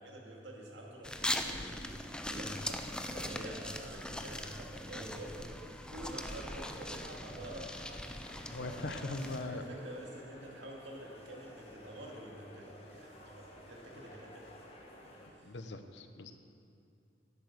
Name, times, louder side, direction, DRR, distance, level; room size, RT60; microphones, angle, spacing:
voice 1, 0.0-14.5 14.8-14.9 15.3-15.5, right 1 dB, 85° right, -1 dB, 2.3 m, -48 dB
sound 1, 1.0-9.4, left 1 dB, 5° left, 0.5 m, -41 dB
sound 2, 6.0-15.3, left 1 dB, 35° left, 1.8 m, -54 dB
voice 2, 8.5-9.6 15.4-16.3, left 2 dB, 70° left, 8 dB, 0.8 m, -40 dB
11.0 x 8.2 x 7.9 m, 2.5 s
head